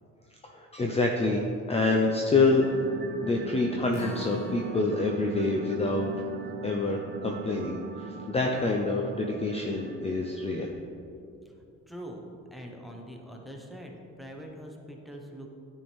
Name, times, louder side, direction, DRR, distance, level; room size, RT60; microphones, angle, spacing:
voice 1, 0.4-1.4 1.7-2.7 3.2-6.2 6.6-10.7, left 3 dB, 20° left, 1 dB, 0.5 m, -27 dB
sound 1, 2.4-10.8, right 7 dB, 35° right, 0.5 m, -42 dB
Acoustic guitar, 3.9-10.2 10.6-10.7 11.1-11.2, left 1 dB, 60° left, 1.5 m, -44 dB
voice 2, 11.9-12.2 12.5-15.5, equal, ahead, 0 dB, 0.9 m, -43 dB
9.5 x 4.5 x 3.5 m, 2.6 s
cardioid pair, 90°, 30 cm